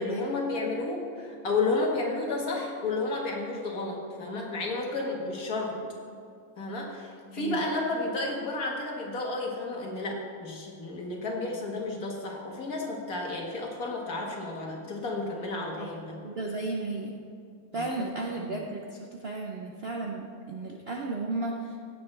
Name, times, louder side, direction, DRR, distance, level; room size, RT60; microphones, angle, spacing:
voice 1, 0.0-5.7 6.6-16.2 17.7-18.1 18.4-18.6, left 3 dB, 50° left, -1 dB, 1.9 m, -32 dB
voice 2, 16.2-17.2 17.7-21.8, right 3 dB, 90° right, 0 dB, 0.5 m, -34 dB
16.0 x 7.5 x 3.3 m, 2.4 s
omnidirectional pair, 2.1 m